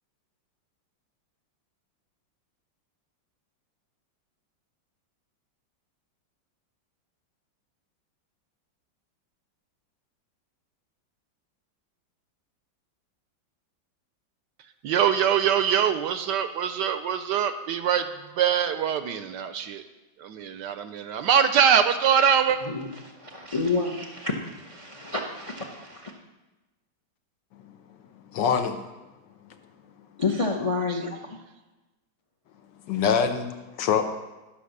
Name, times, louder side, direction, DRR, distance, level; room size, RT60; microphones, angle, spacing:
voice 1, 14.8-18.0 18.3-19.8 20.2-22.6 30.9-31.0, right 8 dB, 75° right, 10 dB, 1.1 m, -23 dB
voice 2, 22.6-26.1 30.2-31.4, left 3 dB, 40° left, 1 dB, 0.4 m, -29 dB
voice 3, 28.3-28.8 32.9-34.1, left 7 dB, 70° left, 8 dB, 1.4 m, -24 dB
12.0 x 5.8 x 6.5 m, 1.1 s
omnidirectional pair, 2.1 m